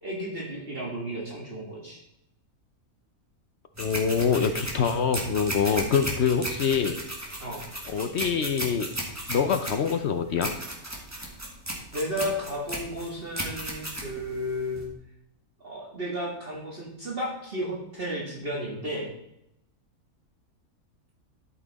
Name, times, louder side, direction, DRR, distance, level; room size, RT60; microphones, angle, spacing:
voice 1, 0.0-2.0 5.8-6.0 7.4-7.7 11.9-14.9 15.6-19.1, equal, 40° right, -3 dB, 1.8 m, -33 dB
sound 1, 3.7-14.9, right 1 dB, 10° right, 1.7 m, -35 dB
voice 2, 3.8-7.0 7.9-8.9 9.3-10.5, left 6 dB, 60° left, 9 dB, 0.8 m, -25 dB
12.5 x 5.6 x 4.0 m, 0.82 s
omnidirectional pair, 1.5 m